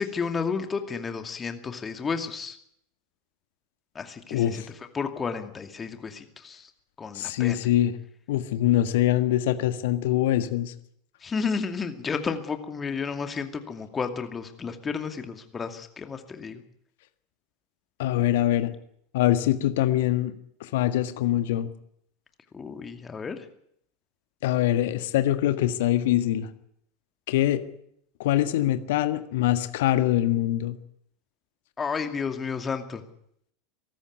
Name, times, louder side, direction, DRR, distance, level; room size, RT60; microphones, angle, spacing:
voice 1, 0.0-2.6 3.9-4.6 4.9-6.7 7.0-7.6 11.2-16.6 22.5-23.5 31.8-33.0, left 5 dB, 20° left, 7 dB, 2.4 m, -32 dB
voice 2, 4.3-4.7 7.1-7.9 8.3-10.7 18.0-18.7 19.1-20.3 20.6-21.7 24.4-26.5 27.3-27.6 28.2-30.8, left 13 dB, 60° left, 11 dB, 1.6 m, -23 dB
23.5 x 13.5 x 9.7 m, 0.71 s
figure-of-eight pair, 80°, 0 cm